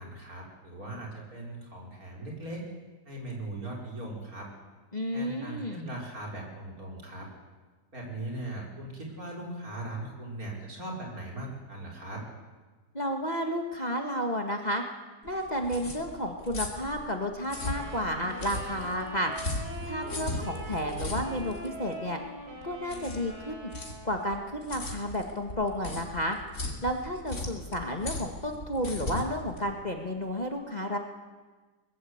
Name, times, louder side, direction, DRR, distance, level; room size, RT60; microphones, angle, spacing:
voice 1, 0.0-2.6 3.1-4.5 5.1-7.3 7.9-12.2, right 1 dB, 55° right, -1 dB, 5.7 m, -39 dB
voice 2, 4.9-5.9 12.9-14.8 15.2-19.3 19.8-22.2 22.6-23.7 24.0-26.4 26.8-31.0, equal, 25° left, 3 dB, 1.8 m, -32 dB
sound 1, 15.2-30.4, left 2 dB, 45° left, 3.2 m, -38 dB
Wind instrument woodwind instrument, 17.5-24.7, right 1 dB, 90° right, 4.9 m, -43 dB
23.0 x 21.0 x 8.1 m, 1.3 s
omnidirectional pair, 1.8 m